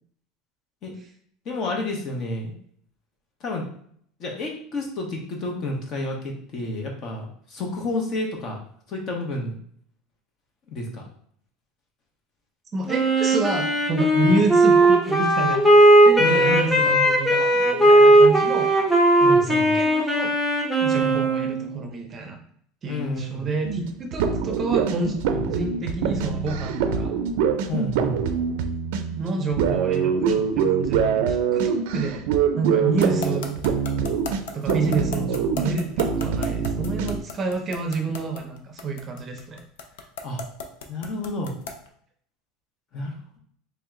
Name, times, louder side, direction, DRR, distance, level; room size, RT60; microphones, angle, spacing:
voice 1, 1.4-2.6 3.4-3.6 4.2-8.6 8.9-9.5 10.7-11.0 14.1-14.3 16.2-16.9 19.2-19.8 21.0-21.2 22.9-23.5 25.3-25.4 27.7-28.2 33.0-33.1 40.2-40.4 40.9-41.5 42.9-43.4, left 2 dB, 40° left, 1 dB, 0.9 m, -30 dB
voice 2, 12.7-18.7 19.2-20.3 20.8-22.4 22.8-27.1 29.1-32.2 32.5-33.6 34.5-39.6, right 3 dB, 25° right, 4 dB, 0.6 m, -29 dB
Wind instrument woodwind instrument, 12.9-21.7, right 1 dB, 10° left, 0.7 m, -17 dB
sound 1, 23.6-37.2, right 6 dB, 70° right, 0.4 m, -24 dB
sound 2, 33.0-41.9, left 5 dB, 90° left, 0.6 m, -34 dB
3.3 x 2.8 x 3.6 m, 0.64 s
supercardioid pair, 150°, 0 cm